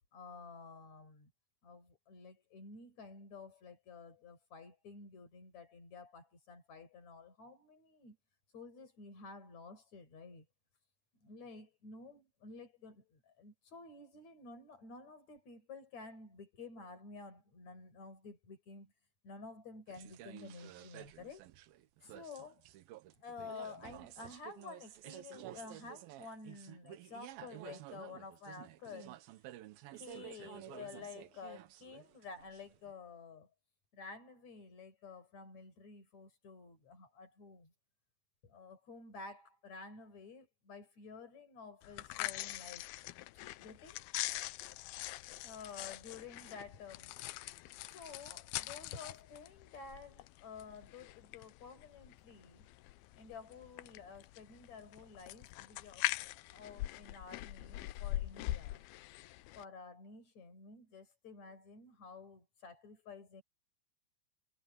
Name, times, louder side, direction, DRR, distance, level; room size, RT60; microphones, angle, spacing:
voice 1, 0.1-1.3 1.6-8.2 8.5-10.5 11.1-18.9 19.2-21.5 22.0-22.7 23.1-29.2 29.9-33.5 33.9-37.7 38.4-42.9 43.6-44.1 45.4-47.1 47.8-52.7 53.2-58.8 59.6-63.4, left 4 dB, 45° left, 6.1 m, -51 dB
sound 1, 19.9-32.9, right 14 dB, 80° right, 2.7 m, -52 dB
sound 2, 41.8-59.6, left 16 dB, 85° left, 2.5 m, -43 dB
omnidirectional pair, 4.4 m